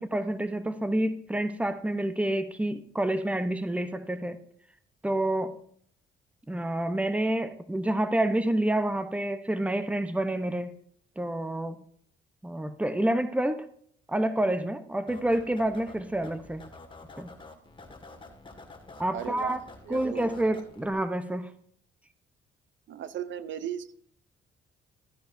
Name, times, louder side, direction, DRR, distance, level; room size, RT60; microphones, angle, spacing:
voice 1, 0.0-4.4 5.0-5.6 6.5-10.7 11.2-11.8 12.4-13.6 14.1-16.6 17.2-17.3 19.0-19.6 19.9-21.5, right 1 dB, 5° right, 11 dB, 0.8 m, -28 dB
sound 1, 15.1-20.9, left 3 dB, 25° left, 1.9 m, -48 dB
voice 2, 19.1-19.6 19.9-20.5 22.9-23.9, right 9 dB, 70° right, 13 dB, 0.7 m, -37 dB
13.0 x 10.0 x 2.7 m, 0.63 s
cardioid pair, 90°, 20 cm